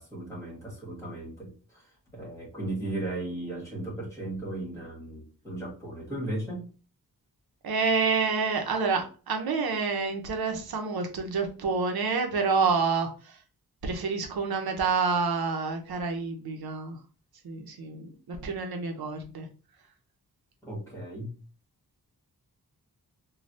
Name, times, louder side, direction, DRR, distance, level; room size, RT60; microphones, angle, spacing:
voice 1, 0.0-6.7 20.6-21.3, right 1 dB, 10° left, -3 dB, 1.6 m, -36 dB
voice 2, 7.6-13.4 13.8-17.0 17.4-19.5, right 4 dB, 85° right, 4 dB, 0.7 m, -28 dB
3.2 x 2.3 x 2.6 m, 0.36 s
wide cardioid pair, 115°, 36 cm